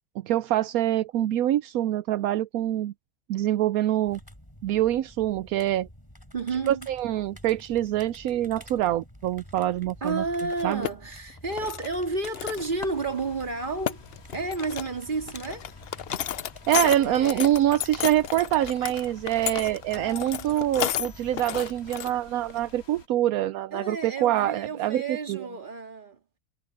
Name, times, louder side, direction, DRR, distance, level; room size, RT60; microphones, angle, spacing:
voice 1, 0.2-2.9 3.3-4.2 4.6-5.9 6.7-10.2 10.6-10.8 16.7-25.0 25.3-25.5, right 13 dB, 80° right, 1.0 m, -25 dB
sound 1, 4.1-21.9, equal, 15° left, 6.6 m, -49 dB
voice 2, 6.3-6.9 10.0-14.0 14.3-15.7 17.0-17.5 19.9-20.6 23.7-26.4, right 3 dB, 35° right, 2.4 m, -32 dB
sound 2, 10.5-10.9 11.3-11.9 12.2-13.0 13.3-13.4 13.6-14.9 15.3-22.1 22.5-22.6 24.0-24.1 24.4-24.7, left 10 dB, 60° left, 0.7 m, -32 dB
sound 3, 12.5-23.1, left 4 dB, 80° left, 2.4 m, -51 dB
omnidirectional pair, 1.5 m